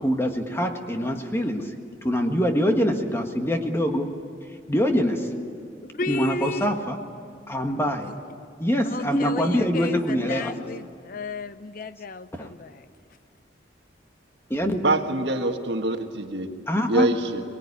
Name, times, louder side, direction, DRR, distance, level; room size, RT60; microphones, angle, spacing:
voice 1, 0.0-1.7 2.0-4.1 4.7-5.3 6.1-7.0 7.5-8.1 8.6-10.5 12.4-12.5 14.5-14.8 16.7-17.1, equal, 15° left, 4 dB, 1.6 m, -24 dB
voice 2, 5.8-6.8 8.8-12.9, left 3 dB, 45° left, 14 dB, 0.5 m, -33 dB
voice 3, 14.8-16.5 16.9-17.4, right 2 dB, 65° right, 5 dB, 1.7 m, -24 dB
23.5 x 21.0 x 9.8 m, 2.3 s
head